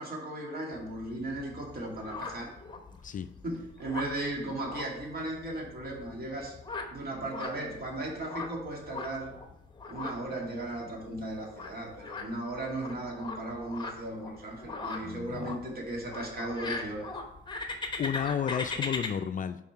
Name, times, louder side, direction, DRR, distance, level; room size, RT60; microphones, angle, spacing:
voice 1, 0.0-2.5 3.4-6.6 6.9-9.3 9.9-17.1, right 1 dB, 50° right, -1 dB, 2.1 m, -36 dB
sound 1, 0.7-19.1, left 3 dB, 25° left, 1.0 m, -41 dB
voice 2, 15.0-15.6 18.0-19.6, left 8 dB, 40° left, 10 dB, 0.4 m, -32 dB
5.4 x 4.8 x 4.5 m, 0.83 s
cardioid pair, 90°, 20 cm